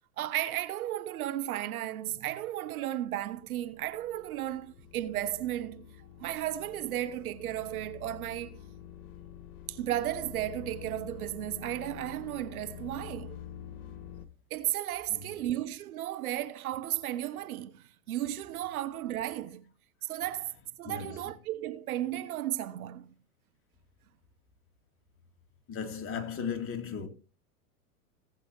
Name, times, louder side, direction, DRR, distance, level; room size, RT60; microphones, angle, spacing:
voice 1, 0.2-8.6 9.7-13.4 14.5-19.6 20.0-23.1, right 13 dB, 70° right, 1.1 m, -34 dB
sound 1, 3.1-14.3, left 10 dB, 60° left, 1.5 m, -47 dB
voice 2, 20.8-21.2 25.7-27.1, left 6 dB, 30° left, 2.3 m, -36 dB
18.0 x 7.9 x 3.0 m
hypercardioid pair, 105°, 45 cm